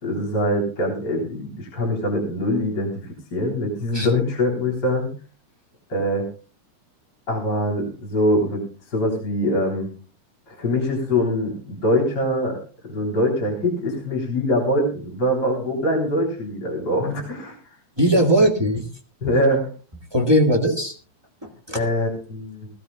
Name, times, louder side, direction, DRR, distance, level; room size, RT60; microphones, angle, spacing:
voice 1, 0.0-2.9 3.3-5.1 5.9-6.3 7.3-9.9 10.5-12.6 12.9-17.6 19.2-19.7 21.7-22.7, left 1 dB, 30° left, -1 dB, 3.9 m, -23 dB
voice 2, 18.0-18.9 20.1-20.9 21.4-21.8, equal, 20° right, 1 dB, 0.7 m, -19 dB
21.0 x 15.5 x 2.3 m, 0.36 s
omnidirectional pair, 3.6 m